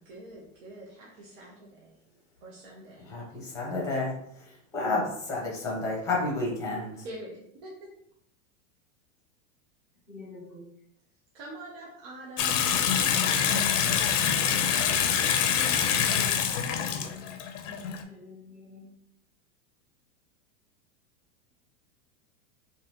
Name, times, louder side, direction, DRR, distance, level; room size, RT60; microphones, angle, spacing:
voice 1, 0.1-1.9 2.4-3.1 7.0-7.9 11.3-12.7 13.3-14.8, right 1 dB, 50° right, -4 dB, 0.9 m, -45 dB
voice 2, 3.0-7.1, left 2 dB, 10° left, -3 dB, 1.0 m, -31 dB
voice 3, 10.1-10.7 16.1-17.4 17.8-18.9, left 3 dB, 25° right, -4 dB, 1.2 m, -48 dB
Water tap faucet / Sink (filling or washing) / Bathtub (filling or washing), 12.4-18.0, left 8 dB, 70° left, 0.6 m, -25 dB
3.8 x 2.8 x 3.0 m, 0.73 s
supercardioid pair, 165°, 38 cm